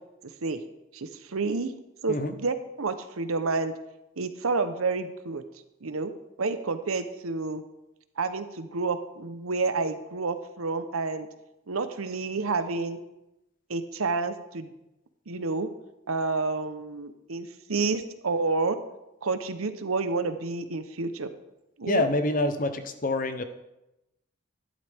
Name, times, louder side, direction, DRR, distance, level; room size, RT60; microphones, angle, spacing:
voice 1, 0.9-1.7 2.0-3.7 4.2-5.4 5.8-6.1 6.4-7.6 8.2-11.3 11.7-13.0 13.7-14.7 15.3-15.7 16.1-18.8 19.2-21.3 21.8-22.1, right 3 dB, 90° right, 10 dB, 0.9 m, -29 dB
voice 2, 21.9-23.4, left 2 dB, 40° left, 9 dB, 0.8 m, -26 dB
12.0 x 11.5 x 3.5 m, 0.93 s
head